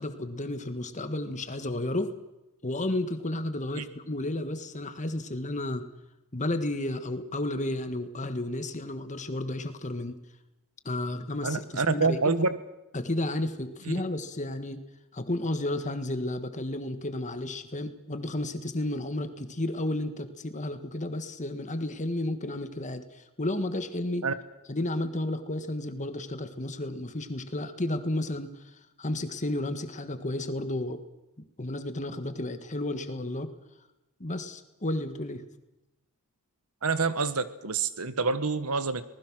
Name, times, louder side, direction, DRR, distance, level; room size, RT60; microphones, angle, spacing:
voice 1, 0.0-2.1 2.6-5.9 6.3-10.2 10.8-12.3 12.9-14.8 15.1-24.3 24.7-28.6 29.0-31.0 31.6-33.5 34.2-35.4, left 1 dB, 35° left, 9 dB, 1.6 m, -32 dB
voice 2, 11.4-12.6 13.8-13.9 24.2-24.3 36.8-39.0, right 4 dB, 80° right, 12 dB, 1.4 m, -27 dB
25.5 x 19.5 x 6.3 m, 0.96 s
head